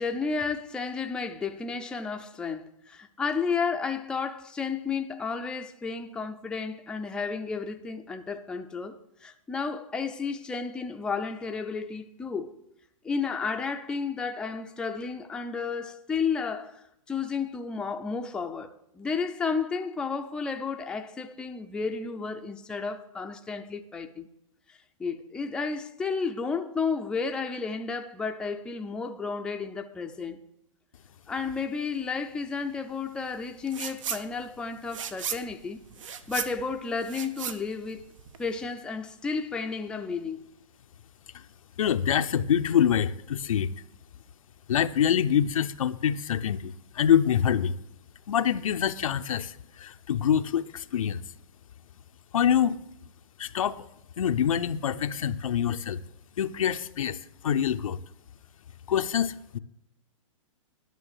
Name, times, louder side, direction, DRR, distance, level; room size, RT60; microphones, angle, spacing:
voice 1, 0.0-12.5 13.0-24.3 25.0-30.4 31.3-38.1 38.4-40.4, left 5 dB, 5° left, 0.5 m, -32 dB
sound 1, 33.7-34.2 34.6-38.5, right 8 dB, 70° right, 1.0 m, -36 dB
voice 2, 41.8-43.7 44.7-47.7 48.3-51.2 52.3-52.8 53.4-53.8 54.2-56.0 56.4-58.0 58.9-59.6, left 9 dB, 85° left, 0.7 m, -25 dB
11.5 x 6.3 x 6.6 m
hypercardioid pair, 145°, 17 cm